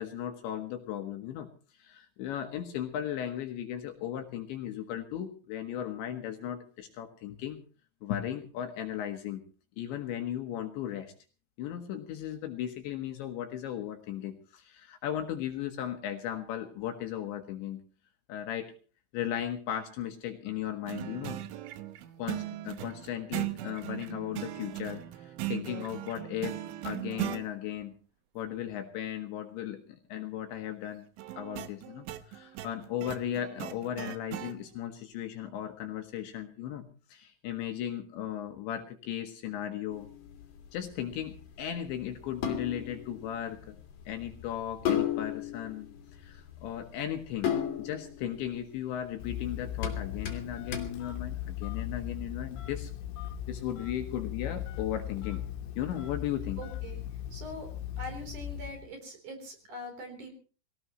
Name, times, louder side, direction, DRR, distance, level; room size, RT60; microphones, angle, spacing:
voice 1, 0.0-1.5 1.7-7.6 8.0-9.4 9.8-11.1 11.6-17.8 18.3-18.7 19.1-21.4 22.2-27.9 28.3-29.8 30.1-31.0 31.3-40.1 40.7-43.8 44.1-47.5 47.8-52.9 53.5-55.5 55.8-56.6, left 10 dB, 70° left, 5 dB, 3.2 m, -36 dB
sound 1, 20.9-27.4 31.2-34.6, right 14 dB, 75° right, 3.2 m, -38 dB
sound 2, 39.9-52.0, left 9 dB, 50° left, 3.4 m, -37 dB
Telephone, 49.2-58.9, left 11 dB, 85° left, 3.9 m, -38 dB
voice 2, 56.6-57.0 57.3-57.7 58.0-60.3, equal, 40° right, 4 dB, 4.8 m, -42 dB
23.0 x 17.5 x 3.1 m, 0.37 s
omnidirectional pair, 6.0 m